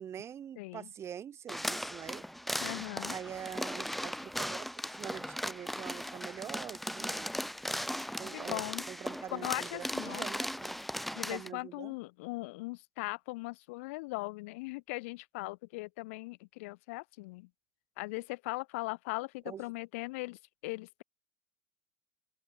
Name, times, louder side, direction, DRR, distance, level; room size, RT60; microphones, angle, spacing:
voice 1, 0.0-2.3 3.1-7.4 8.2-8.6 8.9-10.8 11.3-11.9 19.5-19.6, right 9 dB, 35° right, 4.7 m, -44 dB
voice 2, 0.6-0.9 2.6-3.2 8.3-8.8 9.3-10.3 11.1-17.5 18.0-21.0, left 24 dB, 65° left, 3.1 m, -39 dB
sound 1, 1.5-11.5, equal, ahead, 6.4 m, -38 dB
open air
hypercardioid pair, 80°, 8 cm